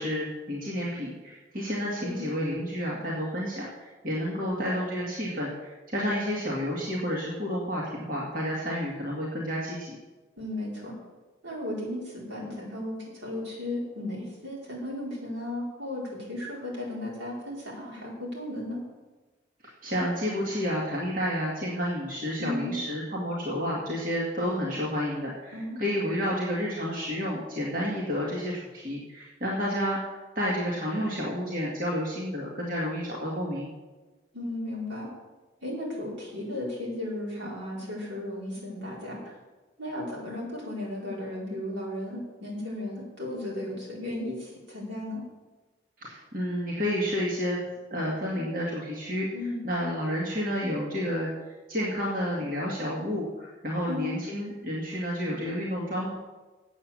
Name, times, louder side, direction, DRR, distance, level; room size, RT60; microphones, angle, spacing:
voice 1, 0.0-10.0 19.8-33.7 46.0-47.6 47.9-49.3 49.6-51.3 51.7-56.1, equal, 50° right, -5 dB, 2.1 m, -30 dB
voice 2, 10.4-10.9 11.4-18.8 22.4-22.8 25.5-25.8 34.3-35.1 35.6-39.2 39.8-45.2 49.3-49.7 53.9-54.2, left 1 dB, 80° right, -5 dB, 4.8 m, -35 dB
8.8 x 8.3 x 7.5 m, 1.2 s
head